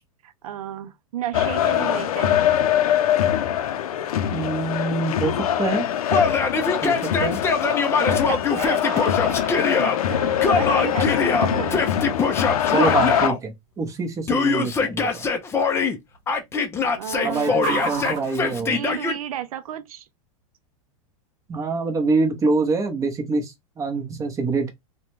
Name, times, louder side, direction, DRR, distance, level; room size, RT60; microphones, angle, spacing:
voice 1, 0.2-2.4 7.9-11.9 17.0-18.0 18.6-20.1, right 10 dB, 80° right, 0.4 m, -33 dB
sound 1, 1.3-13.3, left 10 dB, 85° left, 0.5 m, -23 dB
voice 2, 4.3-5.9 6.8-7.4 12.7-15.3 17.2-18.8 21.5-24.7, right 3 dB, 15° right, 0.7 m, -25 dB
sound 2, 4.6-19.4, right 4 dB, 65° right, 0.8 m, -41 dB
Yell, 6.1-10.0 10.4-13.4 14.3-16.0 16.3-19.2, left 4 dB, 15° left, 0.4 m, -23 dB
2.4 x 2.1 x 3.0 m
hypercardioid pair, 125°, 18 cm